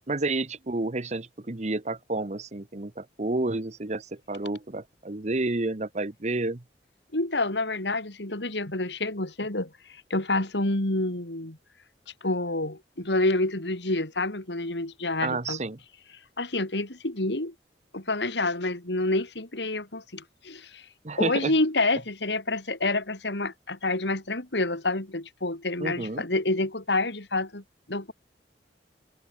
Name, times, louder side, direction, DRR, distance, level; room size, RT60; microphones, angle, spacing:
voice 1, 0.1-6.6 15.2-15.8 21.0-21.5 25.8-26.2, right 2 dB, 40° right, 1.1 m, -30 dB
voice 2, 7.1-9.7 10.1-11.6 12.2-15.6 16.4-17.5 17.9-20.8 21.2-27.6 27.9-28.1, left 2 dB, 75° left, 3.4 m, -28 dB
head